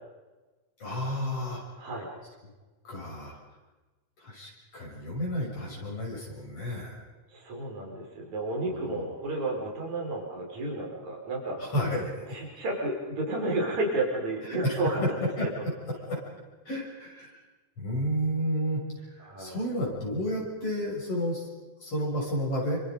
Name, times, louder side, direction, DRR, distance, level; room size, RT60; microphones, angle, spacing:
voice 1, 0.8-1.6 2.8-3.4 4.2-7.0 8.7-9.1 11.6-12.1 14.4-15.7 16.0-16.2 16.7-17.4 17.8-21.5 21.8-22.8, equal, 50° left, -3 dB, 7.9 m, -31 dB
voice 2, 1.8-2.1 7.3-11.6 12.3-15.0 19.2-19.6, right 2 dB, 75° right, -2 dB, 6.5 m, -32 dB
29.0 x 25.5 x 5.2 m, 1.2 s
omnidirectional pair, 3.3 m